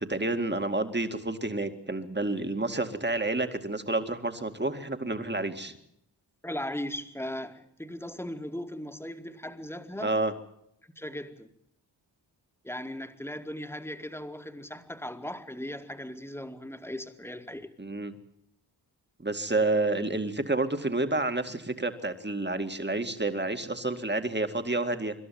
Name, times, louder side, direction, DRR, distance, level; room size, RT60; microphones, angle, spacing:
voice 1, 0.0-5.7 10.0-10.3 17.8-18.1 19.2-25.1, right 2 dB, 25° right, 8 dB, 2.3 m, -29 dB
voice 2, 6.4-10.2 11.0-11.5 12.6-17.7, left 1 dB, 5° left, 7 dB, 2.1 m, -38 dB
26.0 x 12.0 x 9.4 m, 0.76 s
cardioid pair, 45°, 45 cm